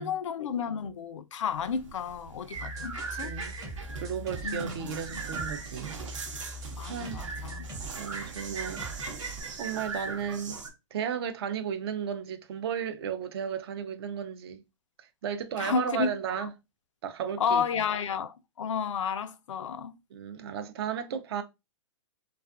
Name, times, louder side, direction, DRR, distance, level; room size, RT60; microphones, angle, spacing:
voice 1, 0.0-3.3 4.4-5.2 6.7-7.7 15.6-16.5 17.4-20.0, left 6 dB, 75° left, 0.4 m, -32 dB
sound 1, 1.5-10.7, right 4 dB, 80° right, 0.9 m, -39 dB
sound 2, 2.5-9.4, right 1 dB, 20° right, 0.8 m, -42 dB
voice 2, 4.0-6.4 6.8-7.2 8.0-9.2 9.6-10.6 10.9-14.6 15.0-16.5 17.0-17.8 20.1-21.4, right 8 dB, 50° right, 0.5 m, -34 dB
2.4 x 2.4 x 2.4 m
hypercardioid pair, 130°, 16 cm